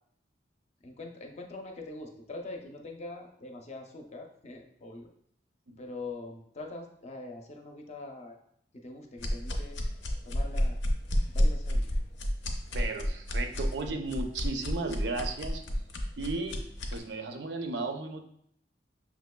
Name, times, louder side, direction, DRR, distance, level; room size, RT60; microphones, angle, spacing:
voice 1, 0.8-5.1 5.8-8.4 8.8-9.8 10.2-10.8 11.3-12.0, left 2 dB, 40° left, 2 dB, 0.6 m, -43 dB
sound 1, 9.2-17.0, equal, 85° left, 0.6 m, -30 dB
voice 2, 12.7-15.6 16.2-16.6 16.9-18.3, right 3 dB, 75° right, 5 dB, 0.5 m, -35 dB
5.9 x 3.0 x 2.2 m, 0.68 s
head